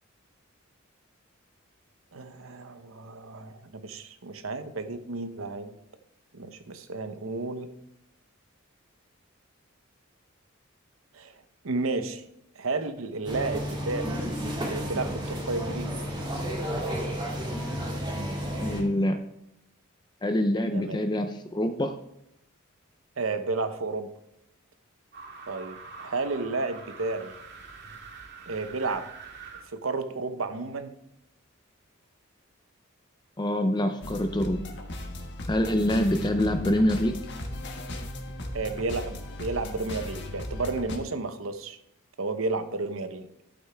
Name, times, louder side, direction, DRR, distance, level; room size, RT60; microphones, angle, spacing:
voice 1, 2.1-5.8 6.3-7.7 11.1-11.3 11.6-12.2 12.6-14.2 14.6-16.0 20.7-21.0 23.2-24.1 25.5-27.3 28.5-29.1 29.7-30.9 38.5-41.8 42.2-43.3, right 3 dB, 75° right, 10 dB, 0.9 m, -32 dB
sound 1, 13.2-18.8, equal, 25° right, 2.0 m, -32 dB
voice 2, 18.6-19.2 20.2-22.0 33.4-34.7 35.5-37.2, left 1 dB, 20° left, 7 dB, 0.5 m, -25 dB
sound 2, 25.1-29.6, right 4 dB, 55° right, 2.0 m, -45 dB
sound 3, 34.0-41.0, left 1 dB, 55° left, 1.4 m, -37 dB
11.5 x 8.8 x 3.4 m, 0.81 s
head